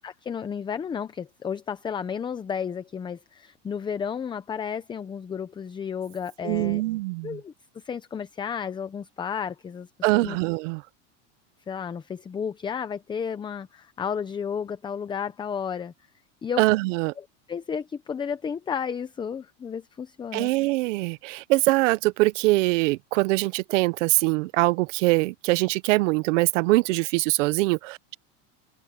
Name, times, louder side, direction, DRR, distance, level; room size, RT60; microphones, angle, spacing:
voice 1, 0.0-6.8 7.2-9.9 10.1-10.4 11.7-15.9 16.4-16.6 17.5-20.5, left 7 dB, 15° left, 0.6 m, -32 dB
voice 2, 6.4-7.4 10.0-10.8 16.6-17.1 20.3-28.2, right 21 dB, 90° right, 0.8 m, -23 dB
supercardioid pair, 160°, 36 cm